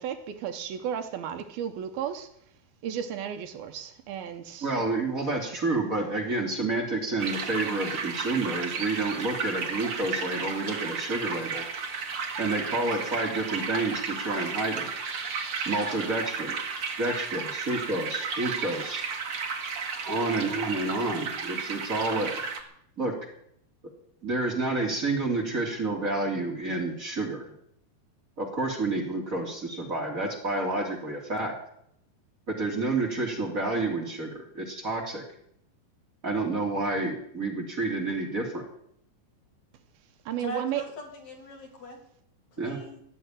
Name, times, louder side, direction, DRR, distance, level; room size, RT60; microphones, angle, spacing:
voice 1, 0.0-2.3 2.8-4.7 40.3-40.8, right 9 dB, 75° right, 8 dB, 2.8 m, -33 dB
voice 2, 4.6-11.6 12.4-14.9 15.6-16.5 17.0-17.4 17.7-19.0 20.1-22.4 23.0-23.1 24.2-27.5 28.4-31.5 32.5-35.2 36.2-38.7 42.6-42.8, right 2 dB, 20° right, 0 dB, 3.1 m, -29 dB
sound 1, 7.2-22.6, right 5 dB, 45° right, 2.2 m, -33 dB
voice 3, 40.4-42.0 42.5-43.0, equal, 45° left, 2 dB, 3.9 m, -40 dB
18.5 x 7.7 x 10.0 m, 0.71 s
omnidirectional pair, 4.5 m